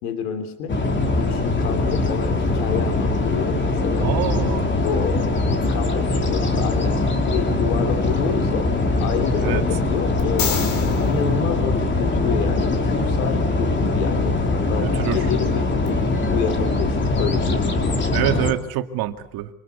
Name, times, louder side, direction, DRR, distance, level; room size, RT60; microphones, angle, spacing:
voice 1, 0.0-0.8 1.1-4.1 4.8-5.3 5.7-8.7 9.0-10.6 11.0-16.0 16.3-18.0, left 7 dB, 85° left, 9 dB, 3.4 m, -29 dB
sound 1, 0.7-18.5, left 2 dB, 25° left, 3.5 m, -22 dB
voice 2, 4.0-4.8 9.4-9.6 14.8-15.2 18.1-19.5, right 13 dB, 55° right, 7 dB, 2.3 m, -26 dB
sound 2, 10.2-12.4 15.8-15.9, left 6 dB, 50° left, 5.2 m, -29 dB
26.0 x 21.5 x 6.8 m, 0.76 s
supercardioid pair, 115°, 43 cm